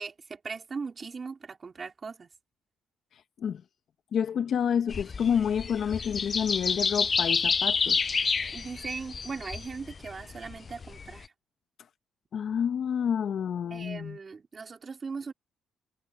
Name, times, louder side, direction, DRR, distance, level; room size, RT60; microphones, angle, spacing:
voice 1, 0.0-2.3 8.5-11.3 13.7-15.3, right 5 dB, 35° right, 3.1 m, -39 dB
voice 2, 3.1-3.6 4.1-8.0 12.3-14.2, left 8 dB, 60° left, 1.3 m, -29 dB
sound 1, 4.9-11.2, left 5 dB, 35° left, 0.5 m, -29 dB
cardioid pair, 90°, 0 cm